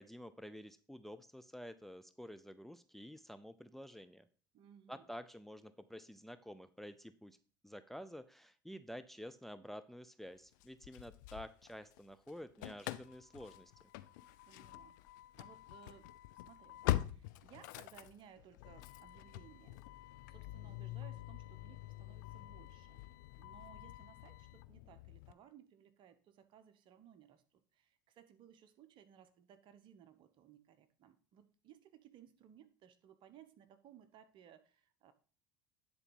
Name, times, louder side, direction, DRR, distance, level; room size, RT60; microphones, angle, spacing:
voice 1, 0.0-4.3 4.9-7.4 7.6-13.7, equal, ahead, 0.6 m, -50 dB
voice 2, 4.5-5.1 14.4-15.0 15.3-19.8 20.3-23.0 23.4-35.1, right 9 dB, 55° right, 1.0 m, -61 dB
Engine starting / Slam, 10.6-12.0 12.3-25.3, left 16 dB, 75° left, 0.5 m, -44 dB
9.8 x 4.1 x 5.4 m
hypercardioid pair, 70°, 10 cm